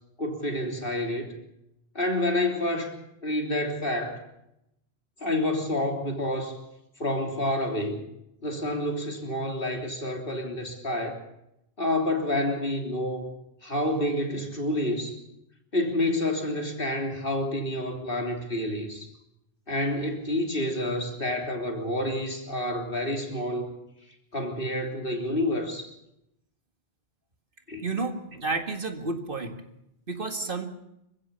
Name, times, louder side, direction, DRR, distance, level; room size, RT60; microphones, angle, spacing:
voice 1, 0.2-1.3 2.0-3.0 3.2-4.2 5.2-6.6 7.0-8.0 8.4-11.2 11.8-13.3 13.6-15.2 15.7-19.1 19.7-23.7 24.3-25.9 27.7-27.8, left 1 dB, 55° left, 3 dB, 3.5 m, -28 dB
voice 2, 27.8-29.6 30.1-30.7, right 3 dB, 55° right, 6 dB, 2.2 m, -31 dB
26.0 x 15.5 x 7.1 m, 0.83 s
omnidirectional pair, 1.1 m